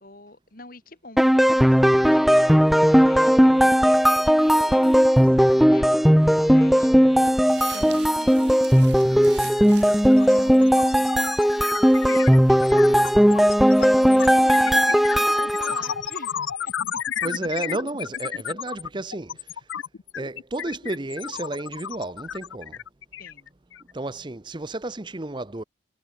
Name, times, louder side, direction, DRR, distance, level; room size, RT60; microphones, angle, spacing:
voice 1, 0.0-11.8 12.0-17.3 23.2-23.5, left 2 dB, 45° left, 3.4 m, -45 dB
sound 1, 1.2-15.9, equal, ahead, 0.4 m, -17 dB
sound 2, 7.2-15.4, right 11 dB, 60° right, 2.5 m, -47 dB
sound 3, 9.1-9.3 9.6-23.9, left 9 dB, 80° left, 0.5 m, -33 dB
voice 2, 17.2-19.6 20.1-22.8 23.9-25.6, right 2 dB, 25° right, 0.7 m, -32 dB
head